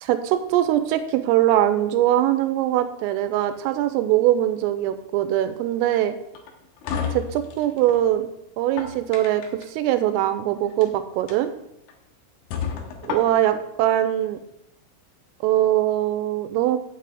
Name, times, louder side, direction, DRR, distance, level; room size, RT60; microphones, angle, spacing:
voice 1, 0.0-6.1 7.1-8.3 8.6-9.4 9.7-11.5 13.0-14.4 15.4-16.8, right 12 dB, 85° right, 10 dB, 3.3 m, -22 dB
sound 1, 6.3-8.0 8.6-9.7 10.6-10.9 11.3-11.4 11.9-12.0 12.5-13.6, left 7 dB, 75° left, 3.4 m, -31 dB
9.4 x 9.0 x 3.5 m, 0.81 s
omnidirectional pair, 6.0 m